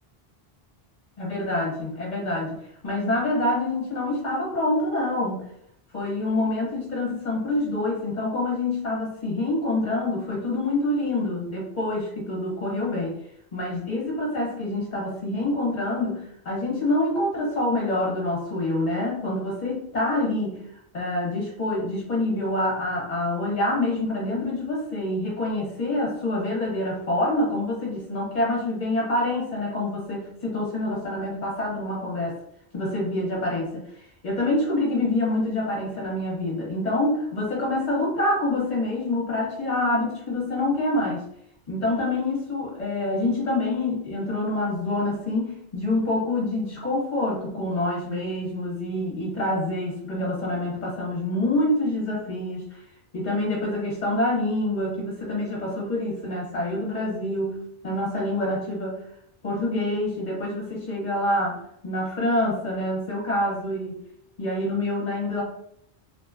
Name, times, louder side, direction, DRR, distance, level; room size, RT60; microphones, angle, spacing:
voice 1, 1.2-2.6 2.8-5.4 5.9-13.2 13.5-20.6 20.9-32.4 32.7-33.8 34.2-41.2 41.7-52.8 53.1-59.0 59.4-64.0 64.4-65.4, left 1 dB, 45° left, -3 dB, 1.0 m, -26 dB
2.7 x 2.0 x 2.4 m, 0.72 s
omnidirectional pair, 1.0 m